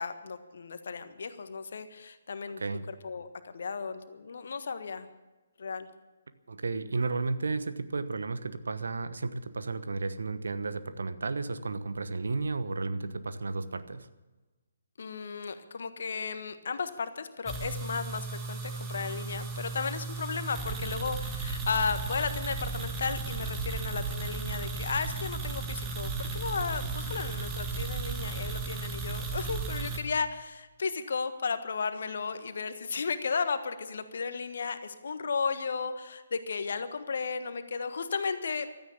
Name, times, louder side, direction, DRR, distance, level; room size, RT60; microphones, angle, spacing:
voice 1, 0.0-2.6 3.0-5.1 5.6-5.9 15.0-38.7, left 5 dB, 55° left, 10 dB, 1.4 m, -34 dB
voice 2, 6.5-14.1, right 3 dB, 65° right, 12 dB, 1.1 m, -33 dB
sound 1, 17.5-30.0, right 4 dB, 15° right, 1.8 m, -35 dB
15.5 x 13.0 x 7.0 m, 1.2 s
figure-of-eight pair, 135°, 0 cm